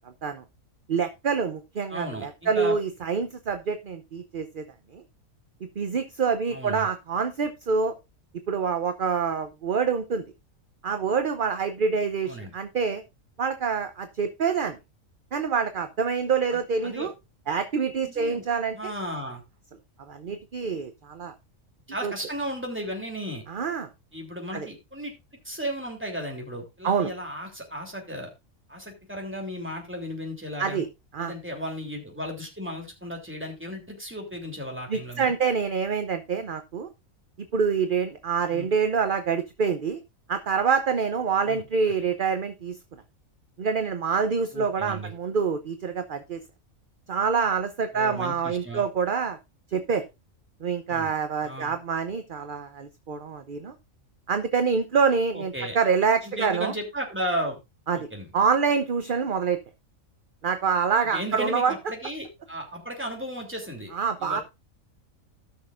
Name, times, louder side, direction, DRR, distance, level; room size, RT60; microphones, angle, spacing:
voice 1, 0.9-4.6 4.9-5.0 5.6-7.9 8.5-10.2 10.8-13.0 13.4-14.8 15.3-17.1 17.5-18.9 20.0-21.3 22.0-22.1 23.5-23.9 24.5-24.7 26.8-27.1 30.6-30.9 31.1-31.3 34.9-36.9 37.5-40.0 40.3-42.8 43.6-46.4 47.1-49.4 49.7-50.0 50.6-53.7 54.3-56.7 57.9-58.1 58.3-59.6 60.4-61.7 63.9-64.4, right 5 dB, 45° right, 8 dB, 0.8 m, -26 dB
voice 2, 1.9-2.8 6.5-6.9 12.2-12.5 16.5-17.1 18.1-18.4 18.7-19.4 21.9-23.4 24.1-25.1 25.4-28.3 28.7-30.8 31.2-35.4 38.5-38.7 41.5-41.6 44.5-45.1 47.9-48.8 50.9-51.1 51.4-51.7 55.3-55.8 56.2-57.6 57.9-58.3 61.1-63.9 64.2-64.4, equal, 10° right, 1 dB, 3.0 m, -35 dB
17.5 x 6.3 x 2.5 m, 0.24 s
omnidirectional pair, 1.4 m